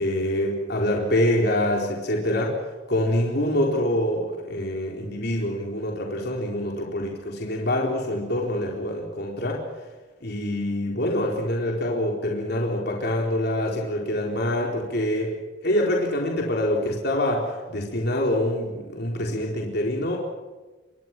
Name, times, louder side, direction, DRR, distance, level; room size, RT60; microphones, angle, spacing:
voice 1, 0.0-2.5 2.9-9.6 10.2-15.4 15.6-20.2, left 1 dB, 55° left, -1 dB, 4.2 m, -25 dB
28.0 x 23.5 x 6.1 m, 1.2 s
head